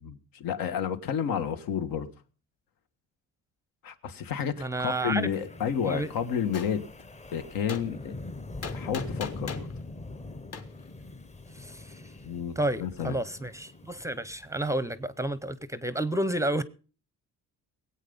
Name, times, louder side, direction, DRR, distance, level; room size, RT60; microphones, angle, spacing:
voice 1, 0.0-2.1 3.8-6.9 7.3-8.2 8.7-9.7 12.2-13.2, left 8 dB, 80° left, 1.7 m, -31 dB
voice 2, 4.6-5.3 5.8-6.1 11.5-12.0 12.6-16.6, right 1 dB, 10° right, 0.6 m, -30 dB
Wind, 4.8-15.0, left 2 dB, 20° left, 0.9 m, -43 dB
Gunshot gunfire, 6.5-6.7 7.7-7.8 8.6-9.7 10.5-10.6, left 6 dB, 45° left, 1.7 m, -37 dB
20.5 x 8.6 x 5.4 m
cardioid pair, 155°, 35 cm